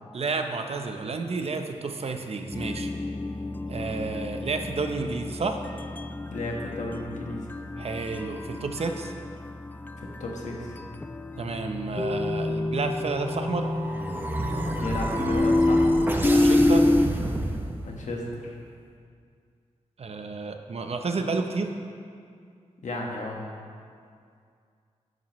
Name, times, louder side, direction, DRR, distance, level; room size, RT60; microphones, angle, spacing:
voice 1, 0.1-2.9 3.7-5.6 7.8-9.1 11.4-13.7 16.3-16.8 20.0-21.7, right 4 dB, 55° right, 5 dB, 0.8 m, -31 dB
sound 1, 2.5-17.1, left 2 dB, 15° left, 0.3 m, -27 dB
voice 2, 6.2-7.5 10.0-10.8 14.7-15.9 17.8-18.6 22.8-23.4, left 2 dB, 80° left, -1 dB, 1.5 m, -34 dB
sound 2, 13.1-18.2, right 1 dB, 15° right, 0.8 m, -31 dB
11.5 x 9.3 x 3.1 m, 2.3 s
wide cardioid pair, 95°, 12 cm